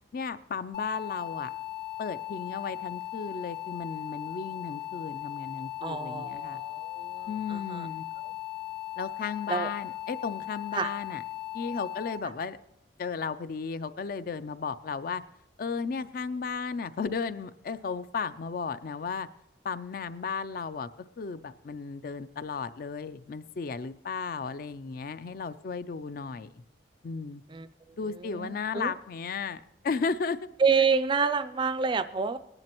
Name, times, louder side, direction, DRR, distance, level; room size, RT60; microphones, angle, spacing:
voice 1, 0.1-1.5 2.0-6.6 7.3-8.1 9.0-11.2 11.5-12.6 13.0-15.2 15.6-19.3 19.6-20.9 21.2-26.6 27.0-27.4 27.9-30.4, left 5 dB, 50° left, 13 dB, 0.4 m, -34 dB
sound 1, 0.7-12.2, left 16 dB, 70° left, 1.6 m, -38 dB
voice 2, 5.8-7.9 9.5-9.7 10.7-10.9 27.5-27.7 28.1-28.9 30.6-32.4, right 5 dB, 25° right, 12 dB, 0.3 m, -28 dB
19.0 x 10.5 x 3.0 m, 0.85 s
head